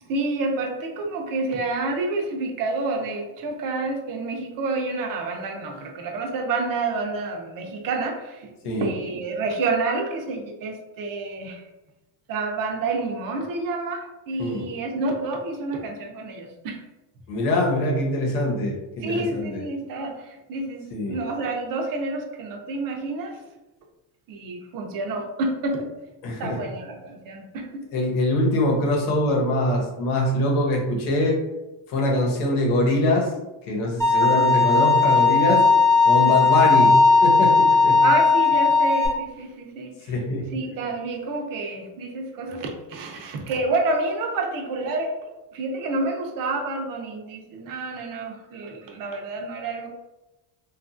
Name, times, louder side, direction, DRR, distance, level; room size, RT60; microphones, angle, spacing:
voice 1, 0.1-11.6 12.3-16.8 19.0-23.4 24.3-25.9 26.4-27.8 34.2-34.5 36.2-36.4 38.0-40.1 40.5-45.1 45.5-49.9, right 3 dB, 45° right, 2 dB, 0.5 m, -29 dB
voice 2, 17.3-19.6 20.9-21.2 26.2-26.6 27.9-31.4 31.9-33.3 33.7-35.7 36.0-38.0 40.1-40.5, left 1 dB, 85° left, -1 dB, 1.0 m, -23 dB
Bowed string instrument, 34.0-39.1, left 4 dB, 5° left, 0.4 m, -17 dB
2.8 x 2.4 x 2.4 m, 1.0 s
cardioid pair, 135°, 50 cm